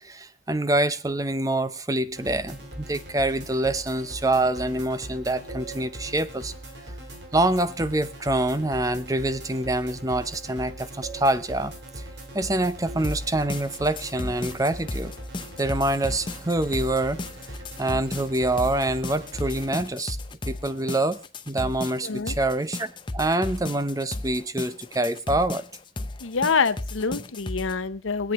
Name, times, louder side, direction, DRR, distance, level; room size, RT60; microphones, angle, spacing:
voice 1, 0.0-6.5 6.9-7.0 7.3-12.1 12.3-15.1 15.6-17.2 17.5-20.2 20.5-21.2 21.5-25.6, right 1 dB, 15° right, 0.7 m, -26 dB
sound 1, 2.1-19.8, right 1 dB, 55° right, 2.8 m, -40 dB
sound 2, 13.0-27.7, left 2 dB, 25° left, 0.7 m, -35 dB
voice 2, 22.0-22.4 26.2-28.3, left 5 dB, 85° left, 0.8 m, -26 dB
24.5 x 8.3 x 3.0 m
head